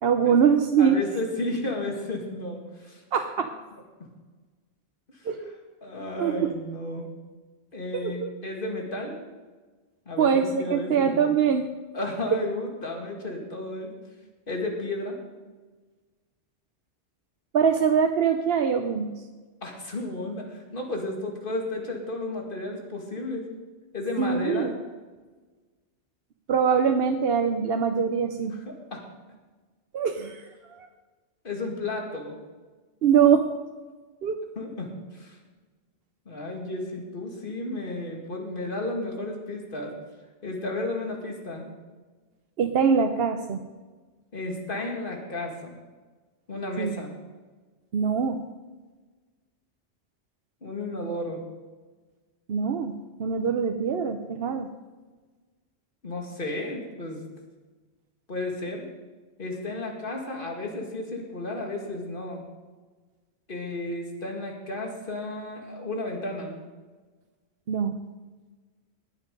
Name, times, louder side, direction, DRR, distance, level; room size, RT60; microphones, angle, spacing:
voice 1, 0.0-1.0 3.1-3.5 5.3-5.5 6.2-6.5 7.9-8.3 10.2-11.7 17.5-19.1 24.2-24.7 26.5-28.5 29.9-30.9 33.0-33.5 34.2-34.4 42.6-43.6 46.8-46.9 47.9-48.4 52.5-54.7 67.7-68.0, right 7 dB, 60° right, 6 dB, 0.9 m, -23 dB
voice 2, 0.8-3.0 5.1-5.5 5.8-7.1 7.7-9.2 10.1-11.3 11.9-13.9 14.5-15.2 19.6-23.5 23.9-24.7 28.7-29.0 31.4-32.4 34.6-35.4 36.3-39.9 40.4-41.7 44.3-45.8 46.5-47.1 50.6-51.4 56.0-57.3 58.3-58.9 59.4-62.4 63.5-66.6, left 2 dB, 50° left, 1 dB, 2.4 m, -33 dB
19.5 x 7.4 x 5.2 m, 1.3 s
omnidirectional pair, 1.2 m